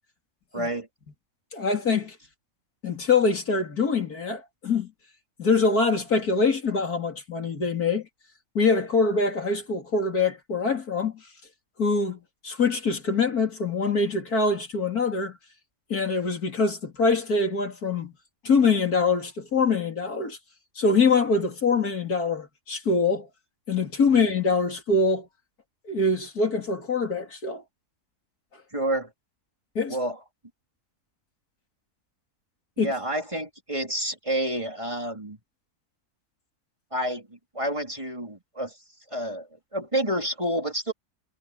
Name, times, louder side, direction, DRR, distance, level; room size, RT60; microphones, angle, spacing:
voice 1, 0.5-0.9 24.1-24.2 28.7-29.1 29.9-30.2 32.8-35.4 36.9-38.8 39.1-40.9, right 1 dB, 20° right, 3.8 m, -29 dB
voice 2, 1.5-2.2 2.8-4.9 5.4-8.1 8.6-11.1 11.8-15.4 15.9-18.1 18.4-20.4 20.8-23.3 23.7-25.3 25.9-27.6 29.8-30.0 32.8-32.9, left 4 dB, 85° left, 3.7 m, -24 dB
omnidirectional pair, 1.6 m